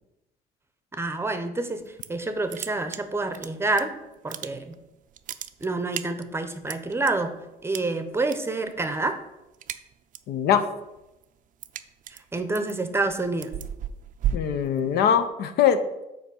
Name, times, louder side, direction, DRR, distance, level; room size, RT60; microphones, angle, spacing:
voice 1, 0.9-3.9 4.2-4.8 5.6-7.4 7.6-9.2 12.1-13.5, right 2 dB, 15° right, 8 dB, 0.7 m, -28 dB
sound 1, 1.8-2.2 2.5-3.8 4.1-4.8 5.1-7.1 7.7-8.4 8.7-9.0 9.3-10.4 10.8-15.3, right 9 dB, 50° right, 0.4 m, -34 dB
voice 2, 10.3-10.6 14.3-16.0, left 8 dB, 70° left, 10 dB, 0.6 m, -22 dB
5.7 x 4.4 x 6.3 m, 0.97 s
cardioid pair, 110°, 17 cm